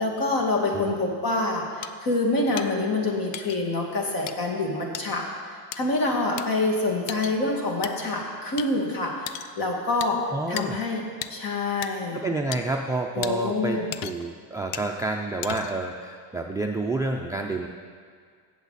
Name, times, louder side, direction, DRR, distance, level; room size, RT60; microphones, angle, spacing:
voice 1, 0.0-10.2 10.5-11.0 11.3-12.2 13.2-13.9, left 2 dB, 50° left, 0 dB, 2.2 m, -26 dB
sound 1, 1.8-1.9 2.6-2.7 3.3-3.6 4.3-4.4 4.9-5.1 5.7-5.8 6.4-6.5 7.1-7.4 7.8-7.9 8.6-8.7 9.3-9.5 10.0-10.1 10.6-10.7 11.2-11.3 11.8-11.9 12.5-12.6 13.2-13.3 13.9-14.3 14.7-14.9 15.4-15.8, left 11 dB, 70° left, 0.7 m, -34 dB
voice 2, 10.3-10.8 12.1-17.7, right 2 dB, 10° right, 2 dB, 0.3 m, -29 dB
16.5 x 7.3 x 4.1 m, 2.1 s
cardioid pair, 135°, 44 cm